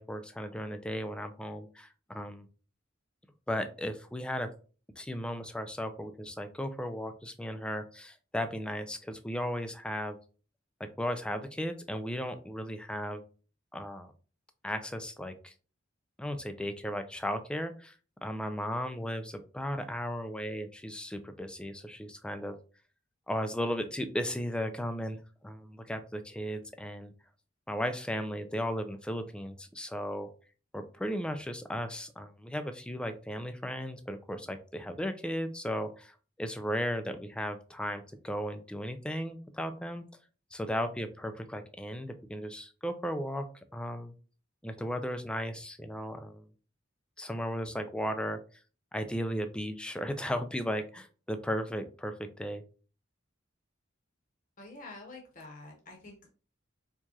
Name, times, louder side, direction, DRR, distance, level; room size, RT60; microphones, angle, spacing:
voice 1, 0.0-2.4 3.5-4.5 5.0-10.2 10.8-13.2 13.7-14.1 14.6-15.5 16.2-17.9 18.2-22.6 23.3-27.1 27.7-30.3 30.7-40.0 40.5-43.5 43.7-44.1 44.6-46.4 47.2-48.4 48.9-52.6, equal, 5° left, 8 dB, 0.3 m, -35 dB
voice 2, 54.6-56.3, left 2 dB, 45° left, 0 dB, 0.9 m, -48 dB
4.6 x 2.3 x 2.8 m, 0.37 s
head